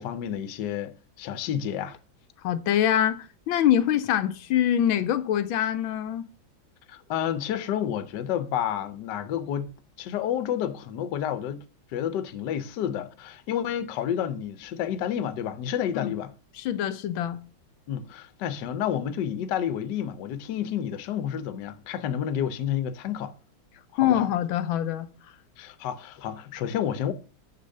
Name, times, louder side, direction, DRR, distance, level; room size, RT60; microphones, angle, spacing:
voice 1, 0.0-2.0 6.9-11.6 11.9-16.3 17.9-23.3 24.0-24.3 25.6-27.1, left 9 dB, 65° left, 1.3 m, -30 dB
voice 2, 2.4-6.3 15.9-16.1 16.5-17.4 24.0-25.1, left 10 dB, 85° left, 1.4 m, -24 dB
7.1 x 6.7 x 6.4 m
omnidirectional pair, 2.2 m